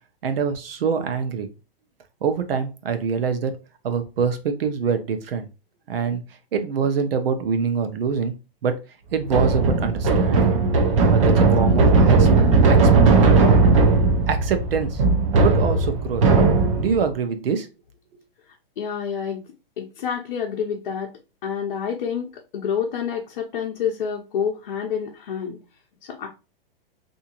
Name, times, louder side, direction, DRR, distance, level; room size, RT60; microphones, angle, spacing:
voice 1, 0.2-1.5 2.2-3.6 3.8-5.5 5.9-6.2 6.5-8.3 8.6-8.8 9.1-10.5 11.1-12.3 12.6-12.9 13.2-13.5 14.3-15.0 15.4-16.2 16.7-17.7, right 6 dB, 75° right, 0.8 m, -25 dB
sound 1, 9.2-17.0, right 3 dB, 35° right, 0.6 m, -17 dB
voice 2, 18.8-19.4 19.8-21.1 21.4-25.6 26.0-26.3, left 7 dB, 50° left, 0.7 m, -28 dB
3.5 x 2.7 x 2.9 m
hypercardioid pair, 165°, 29 cm